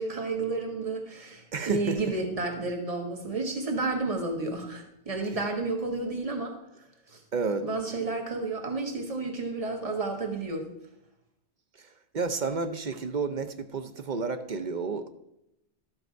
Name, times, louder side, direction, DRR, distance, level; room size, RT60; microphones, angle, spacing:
voice 1, 0.0-6.5 7.1-7.2 7.6-10.7, right 3 dB, 30° right, 3 dB, 1.5 m, -31 dB
voice 2, 1.5-2.0 7.3-7.7 11.8-11.9 12.1-15.1, right 4 dB, 50° right, 9 dB, 0.7 m, -31 dB
12.5 x 7.7 x 4.6 m, 0.82 s
omnidirectional pair, 1.2 m